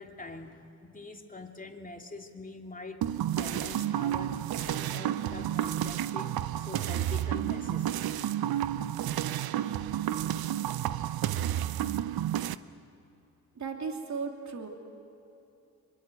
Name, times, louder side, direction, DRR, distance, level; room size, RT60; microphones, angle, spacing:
voice 1, 0.0-8.1 9.4-9.8, left 3 dB, 20° left, 3 dB, 3.0 m, -45 dB
sound 1, 3.0-12.5, right 11 dB, 70° right, 0.8 m, -31 dB
voice 2, 13.5-14.7, right 5 dB, 50° right, 3 dB, 3.2 m, -36 dB
24.5 x 22.5 x 9.4 m, 2.9 s
supercardioid pair, 55°, 37 cm